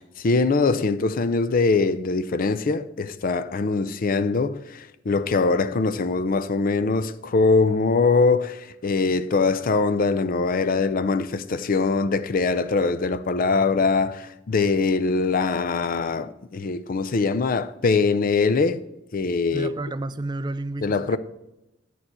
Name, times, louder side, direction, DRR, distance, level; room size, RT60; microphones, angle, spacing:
voice 1, 0.0-18.8 19.1-19.7 20.8-21.2, left 4 dB, 45° left, 0.5 m, -22 dB
voice 2, 19.5-21.2, right 2 dB, 25° right, 0.4 m, -31 dB
9.2 x 6.7 x 4.3 m
head